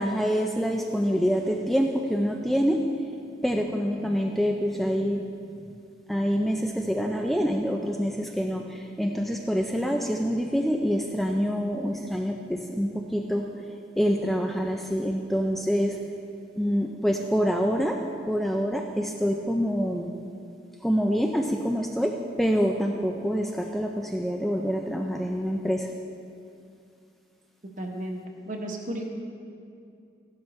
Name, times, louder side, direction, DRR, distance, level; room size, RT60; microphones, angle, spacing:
voice 1, 0.0-2.9 3.4-5.3 6.1-13.6 14.0-16.0 16.6-18.0 18.3-20.1 20.8-25.9, equal, ahead, 2 dB, 0.4 m, -26 dB
voice 2, 27.8-28.2 28.5-29.0, right 1 dB, 45° right, 1 dB, 1.2 m, -33 dB
14.5 x 12.0 x 3.2 m, 2.5 s
head